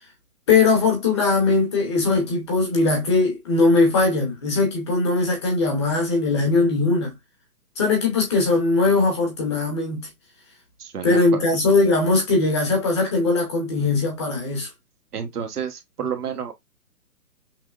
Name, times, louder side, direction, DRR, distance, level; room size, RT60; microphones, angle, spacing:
voice 1, 0.5-7.1 7.8-10.1 11.0-14.7, left 3 dB, 20° left, 1.0 m, -20 dB
voice 2, 10.8-11.4 15.1-16.5, right 7 dB, 70° right, 1.1 m, -30 dB
5.8 x 2.0 x 2.4 m
hypercardioid pair, 165°, 47 cm